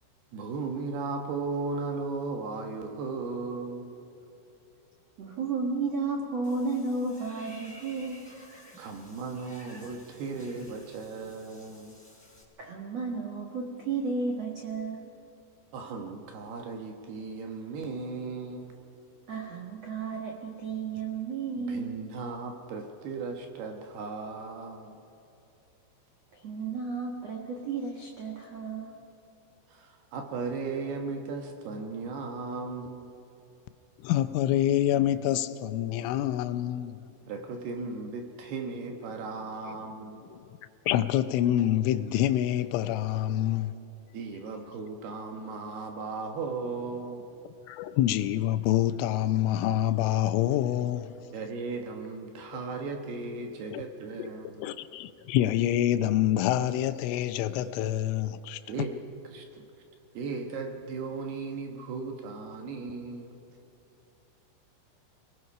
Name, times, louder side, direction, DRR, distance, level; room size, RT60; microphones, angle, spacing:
voice 1, 0.3-4.0 8.8-12.0 15.7-18.7 21.6-25.0 29.7-33.2 37.3-40.3 44.1-47.3 51.3-54.7 58.7-59.0 59.3-59.6 60.1-63.4, right 4 dB, 65° right, 2.8 m, -36 dB
voice 2, 5.2-8.2 12.6-15.1 19.3-22.0 26.3-29.0, right 4 dB, 90° right, 1.4 m, -33 dB
Water / Bathtub (filling or washing), 6.4-12.4, equal, ahead, 4.5 m, -53 dB
voice 3, 34.0-37.0 39.7-39.8 40.3-40.4 40.9-43.7 47.7-51.1 53.7-53.8 54.2-54.3 54.6-58.6, left 12 dB, 80° left, 3.1 m, -26 dB
29.5 x 19.5 x 5.6 m
omnidirectional pair, 5.7 m